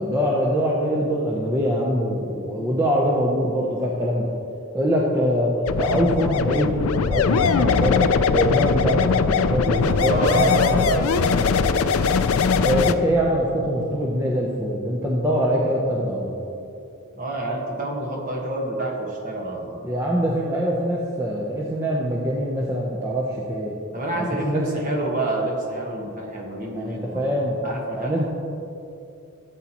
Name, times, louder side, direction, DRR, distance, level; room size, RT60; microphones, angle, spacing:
voice 1, 0.0-4.3 4.7-10.5 12.5-16.4 19.8-23.7 24.1-25.0 26.7-27.6 27.9-28.2, equal, 15° right, -4 dB, 0.7 m, -23 dB
sound 1, 5.7-12.9, left 5 dB, 80° left, 0.4 m, -20 dB
voice 2, 9.5-11.8 17.1-19.8 23.9-27.3 27.6-28.2, right 2 dB, 35° right, -1 dB, 1.5 m, -28 dB
14.0 x 8.4 x 3.0 m, 2.7 s
head